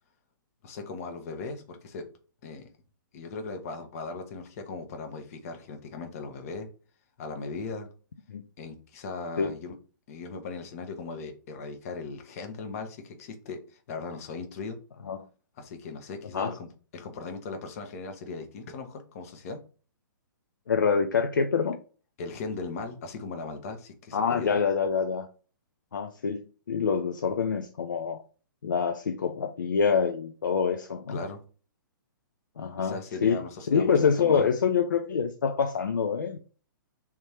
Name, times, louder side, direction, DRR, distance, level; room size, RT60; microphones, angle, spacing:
voice 1, 0.6-2.0 2.4-2.7 3.1-6.7 7.2-7.9 8.6-9.7 10.1-14.8 15.6-16.7 16.9-19.6 22.2-24.6 31.1-31.4 32.8-34.5, left 4 dB, 45° left, 1.0 m, -38 dB
voice 2, 20.7-21.8 24.1-25.3 25.9-26.4 26.7-28.2 28.6-31.2 32.6-33.4 33.7-36.4, left 6 dB, 65° left, 0.5 m, -26 dB
3.7 x 3.0 x 4.3 m
figure-of-eight pair, 120°, 11 cm